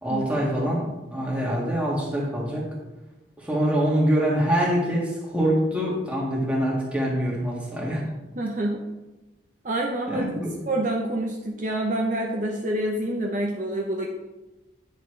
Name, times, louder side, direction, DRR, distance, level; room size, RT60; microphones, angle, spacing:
voice 1, 0.0-2.7 3.4-8.0 10.1-10.5, equal, 5° right, -4 dB, 1.9 m, -25 dB
voice 2, 8.4-8.8 9.6-14.1, right 1 dB, 45° right, 0 dB, 0.8 m, -27 dB
10.0 x 6.8 x 3.3 m, 1.1 s
head